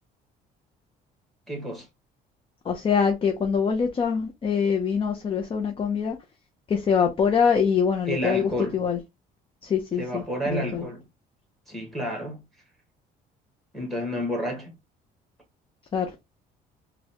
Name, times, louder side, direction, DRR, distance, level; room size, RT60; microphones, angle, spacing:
voice 1, 1.5-1.9 8.1-8.8 10.0-11.0 11.7-12.4 13.7-14.8, equal, ahead, 1.5 m, -30 dB
voice 2, 2.7-6.2 6.7-9.0 9.6-10.8 15.9-16.1, left 6 dB, 30° left, 0.6 m, -24 dB
4.0 x 2.2 x 2.8 m
cardioid pair, 110°, 17 cm